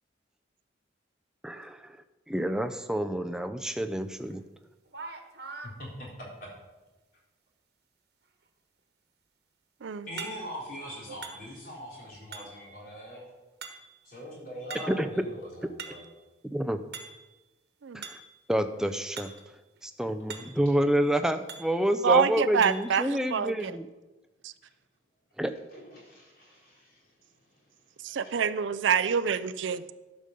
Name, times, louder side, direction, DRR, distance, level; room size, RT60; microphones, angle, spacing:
voice 1, 1.4-2.0 2.3-4.4 14.9-15.1 16.5-16.8 17.9-18.2 18.5-19.3 19.8-23.9 25.4-25.5, equal, 5° right, 7 dB, 0.4 m, -28 dB
sound 1, 4.3-4.4 4.9-5.8 10.2-10.7 11.2-11.8 12.3-12.7 13.6-14.1 14.7-15.1 15.5-16.2 16.9-17.4 18.0-18.4 19.2-19.5 19.8-19.9 20.3-20.7 21.5-21.8 22.6-23.0, right 5 dB, 60° right, 1.2 m, -43 dB
voice 2, 10.1-13.2 14.0-16.1 25.7-27.0 28.1-28.2, equal, 50° left, -4 dB, 3.7 m, -42 dB
voice 3, 22.0-23.8 24.4-24.5 28.0-29.9, right 7 dB, 85° right, 14 dB, 0.4 m, -27 dB
11.5 x 5.1 x 6.7 m, 1.1 s
head